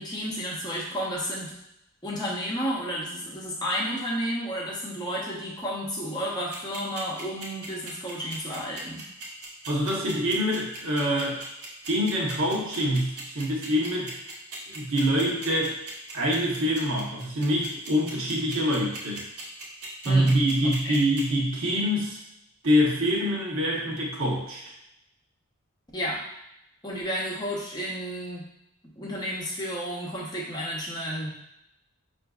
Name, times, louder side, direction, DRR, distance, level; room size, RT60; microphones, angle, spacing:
voice 1, 0.0-1.5 2.0-9.1 20.0-20.3 20.8-21.0 25.9-26.2 26.8-28.5 29.0-31.3, equal, 20° left, -4 dB, 0.7 m, -32 dB
sound 1, 6.5-21.2, right 3 dB, 90° right, 1.2 m, -39 dB
voice 2, 9.7-11.4 11.9-14.2 14.7-15.8 16.1-19.2 20.0-22.2 22.6-24.7, equal, 60° right, -3 dB, 0.9 m, -25 dB
5.7 x 2.5 x 2.3 m, 0.83 s
head